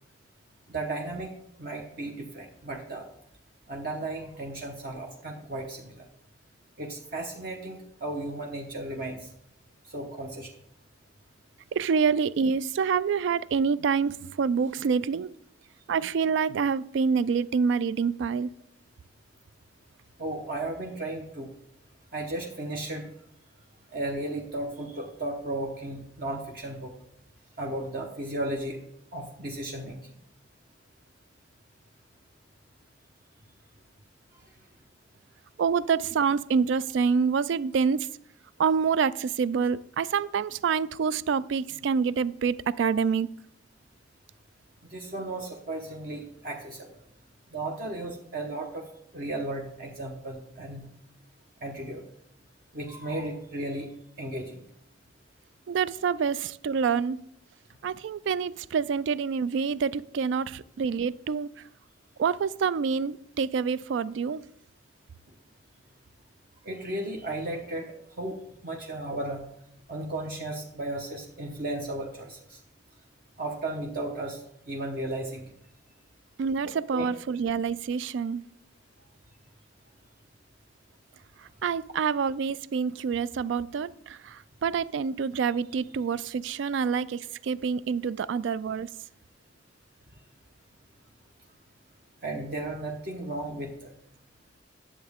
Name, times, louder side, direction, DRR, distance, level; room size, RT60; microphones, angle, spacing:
voice 1, 0.7-1.3 1.6-3.1 3.7-6.1 6.8-9.3 9.9-10.5 20.2-21.5 22.1-23.1 23.9-26.9 27.6-28.8 29.1-30.0 44.9-47.0 47.5-48.9 49.1-50.9 51.6-52.0 52.7-53.9 54.2-54.6 66.6-68.4 68.6-69.4 69.9-72.6 73.4-74.4 74.7-75.4 76.6-77.1 92.2-93.9, right 1 dB, 45° right, 0.9 m, -35 dB
voice 2, 11.7-15.3 15.9-18.5 35.6-38.1 38.6-43.3 55.7-57.2 57.8-61.5 62.2-64.4 76.4-78.4 81.4-88.9, right 6 dB, 70° right, 0.3 m, -27 dB
10.0 x 7.3 x 3.5 m
head